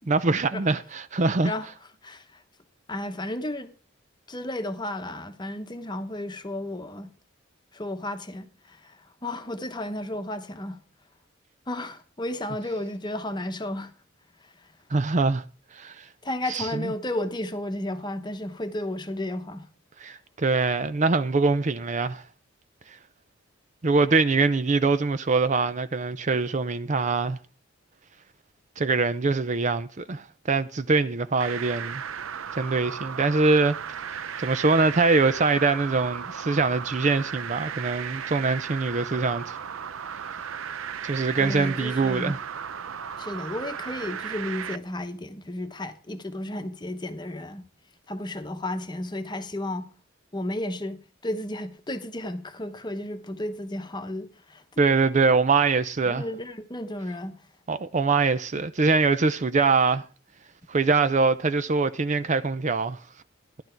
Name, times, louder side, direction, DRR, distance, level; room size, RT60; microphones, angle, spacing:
voice 1, 0.1-1.5 14.9-15.4 15.7-16.0 16.5-16.9 20.0-22.2 23.8-27.4 28.8-32.0 32.5-33.8 34.1-39.6 41.0-42.4 54.8-56.2 57.7-60.0 60.7-63.0, right 4 dB, 35° right, 0.5 m, -23 dB
voice 2, 2.0-2.4 2.9-3.7 4.3-7.1 7.7-10.8 11.7-13.9 14.4-14.5 16.2-19.7 41.4-42.4 43.2-47.6 48.1-49.9 50.3-54.8 56.1-57.4, left 1 dB, 20° left, 1.0 m, -33 dB
sound 1, 31.4-44.8, right 8 dB, 85° right, 0.6 m, -35 dB
14.0 x 11.0 x 4.5 m
head